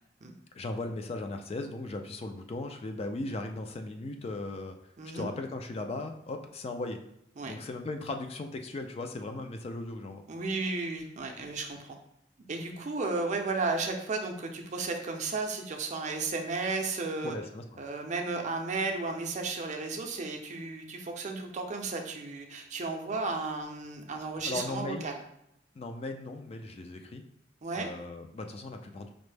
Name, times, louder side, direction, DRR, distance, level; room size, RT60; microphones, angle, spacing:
voice 1, 0.5-4.8 5.1-7.0 7.5-10.2 17.2-17.8 24.4-25.1 25.8-27.2 27.8-29.1, left 2 dB, 35° left, 5 dB, 0.3 m, -37 dB
voice 2, 5.0-5.3 7.4-7.6 10.3-12.0 12.5-17.4 17.8-25.2 27.6-27.9, right 3 dB, 40° right, 4 dB, 0.5 m, -34 dB
5.2 x 2.0 x 3.3 m, 0.78 s
head